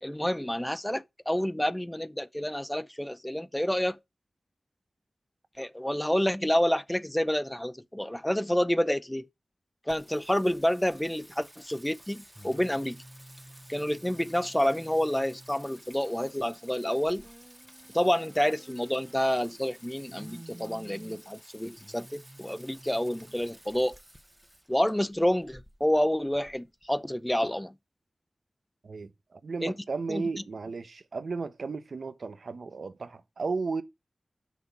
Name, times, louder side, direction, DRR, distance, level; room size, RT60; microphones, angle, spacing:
voice 1, 0.0-4.0 5.6-9.3 9.9-13.0 13.7-17.3 17.9-24.0 24.7-27.7 29.6-29.7 30.1-30.2, equal, 10° left, 0.6 m, -28 dB
Singing, 9.9-27.5, right 1 dB, 10° right, 1.0 m, -51 dB
voice 2, 28.8-33.8, right 4 dB, 75° right, 0.9 m, -34 dB
6.2 x 5.6 x 5.8 m
wide cardioid pair, 80°, 0 cm